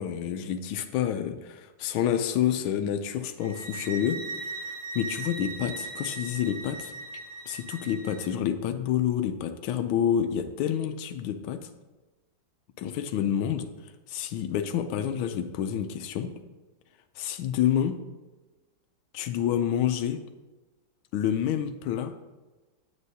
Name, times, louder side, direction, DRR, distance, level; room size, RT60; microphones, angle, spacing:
voice 1, 0.0-4.2 4.9-6.9 7.5-11.7 12.8-13.7 14.1-16.3 17.2-18.0 19.1-20.2 21.1-22.1, left 9 dB, 90° left, 8 dB, 1.4 m, -28 dB
sound 1, 3.4-8.3, right 3 dB, 75° right, 1.6 m, -38 dB
9.5 x 8.0 x 2.7 m, 1.2 s
omnidirectional pair, 2.2 m